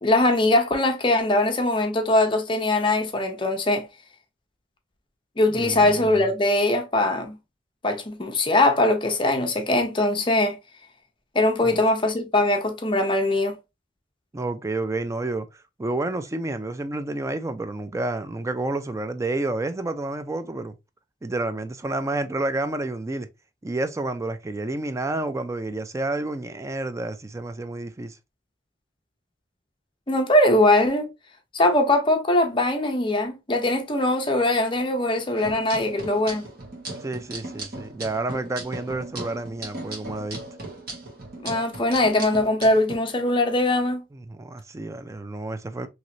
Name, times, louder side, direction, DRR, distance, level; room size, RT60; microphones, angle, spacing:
voice 1, 0.0-3.9 5.4-7.4 7.8-10.6 11.3-13.6 30.1-31.1 31.5-36.4 41.4-44.0, left 1 dB, 25° left, 0.6 m, -21 dB
voice 2, 5.5-6.1 11.6-11.8 14.3-15.5 15.8-20.8 21.2-23.3 23.6-28.2 37.0-40.4 44.1-45.9, right 2 dB, 15° right, 0.3 m, -30 dB
sound 1, 35.4-43.0, right 2 dB, 55° right, 1.3 m, -37 dB
3.1 x 2.9 x 2.6 m
head